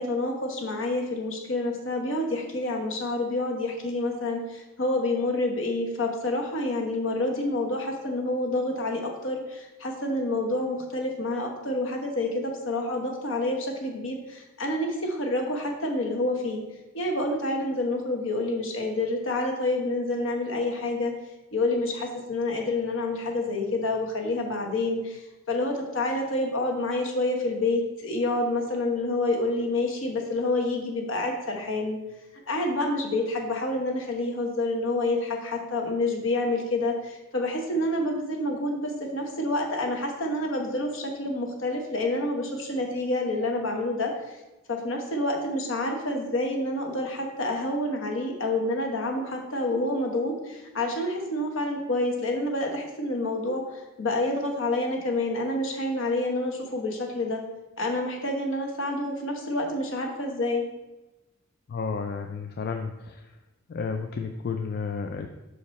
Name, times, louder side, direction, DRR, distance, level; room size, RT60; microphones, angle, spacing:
voice 1, 0.0-16.6 16.9-21.1 21.5-32.0 32.5-44.4 44.7-57.4 57.8-60.6, left 2 dB, 70° left, 2 dB, 1.1 m, -28 dB
voice 2, 61.7-63.3 63.7-65.3, left 5 dB, 50° left, 5 dB, 0.3 m, -32 dB
5.8 x 4.8 x 4.1 m, 1.0 s
head